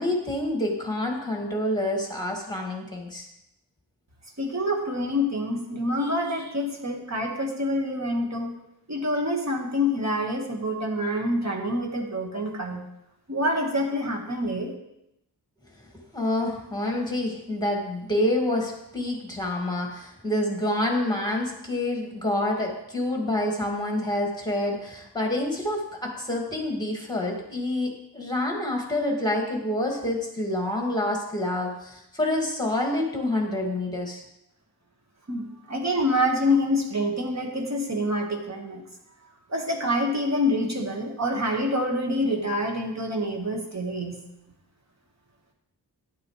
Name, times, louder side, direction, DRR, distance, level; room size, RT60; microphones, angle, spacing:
voice 1, 0.0-3.3 16.1-34.2, left 1 dB, 10° left, 0 dB, 2.2 m, -27 dB
voice 2, 4.4-8.5 8.9-12.8 13.3-14.7 35.3-38.8 39.5-44.2, left 1 dB, 40° right, 1 dB, 1.6 m, -26 dB
11.0 x 8.4 x 3.2 m, 0.83 s
wide cardioid pair, 85°, 40 cm